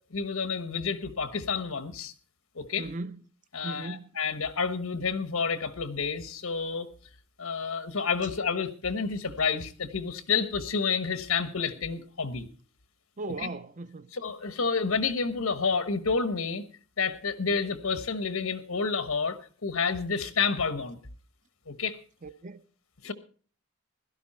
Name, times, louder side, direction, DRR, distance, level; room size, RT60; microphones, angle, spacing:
voice 1, 0.1-2.1 2.5-2.9 3.5-6.9 7.4-12.5 13.4-13.5 14.1-16.6 17.0-21.0 21.7-22.0 23.0-23.1, left 5 dB, 85° left, 1.3 m, -29 dB
voice 2, 2.8-3.2 3.6-4.1 13.2-14.1 22.2-22.6, right 2 dB, 35° right, 0.6 m, -37 dB
16.5 x 12.5 x 4.3 m
head